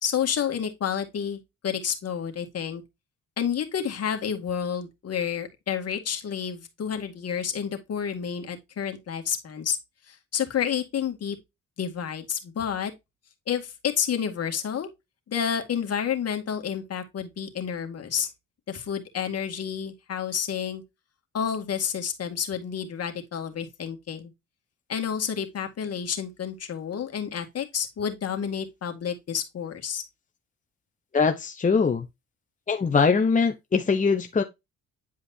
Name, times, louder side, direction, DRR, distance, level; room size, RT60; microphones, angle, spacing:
voice 1, 0.0-2.8 3.4-9.8 10.1-11.4 11.8-12.9 13.5-14.9 15.3-18.3 18.7-20.8 21.3-24.3 24.9-30.0, left 8 dB, 55° left, 2.0 m, -30 dB
voice 2, 31.1-32.0 32.7-34.4, left 5 dB, 25° left, 1.0 m, -22 dB
9.9 x 5.0 x 2.8 m
cardioid pair, 90°, 30 cm